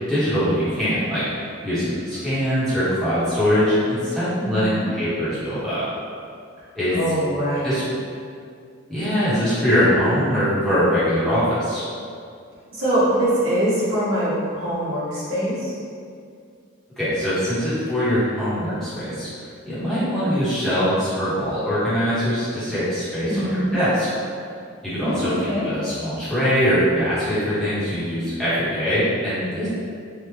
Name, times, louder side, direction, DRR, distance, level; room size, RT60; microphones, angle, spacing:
voice 1, 0.1-5.9 6.7-7.0 7.6-7.8 8.9-11.8 17.0-24.1 24.8-29.7, equal, 5° left, -15 dB, 1.1 m, -22 dB
voice 2, 4.4-4.9 6.9-7.7 12.7-15.7 23.3-23.8 25.0-25.7, right 1 dB, 65° right, -10 dB, 1.1 m, -23 dB
3.4 x 2.4 x 3.1 m, 2.3 s
head